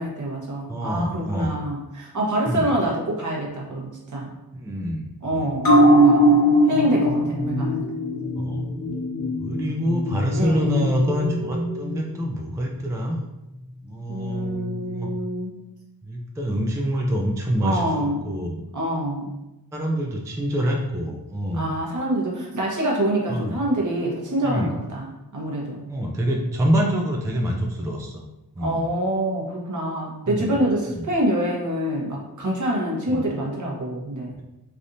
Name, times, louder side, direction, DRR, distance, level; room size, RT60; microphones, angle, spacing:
voice 1, 0.0-4.3 5.2-6.4 6.7-7.9 10.3-10.8 14.1-15.6 17.6-18.3 18.7-19.3 21.5-25.8 28.6-34.3, right 1 dB, 50° right, -2 dB, 1.0 m, -26 dB
voice 2, 0.7-1.6 2.5-2.7 4.5-5.5 8.4-8.6 9.4-13.2 13.8-15.1 16.0-18.6 19.7-21.7 23.3-23.5 24.4-24.7 25.9-28.2 28.6-28.8 30.3-30.6 30.9-31.1 33.1-33.2, equal, 10° right, 0 dB, 0.3 m, -26 dB
sound 1, 5.6-12.5 12.9-13.0, equal, 60° left, 1.4 m, -21 dB
3.4 x 2.6 x 2.5 m, 0.96 s
cardioid pair, 65°, 39 cm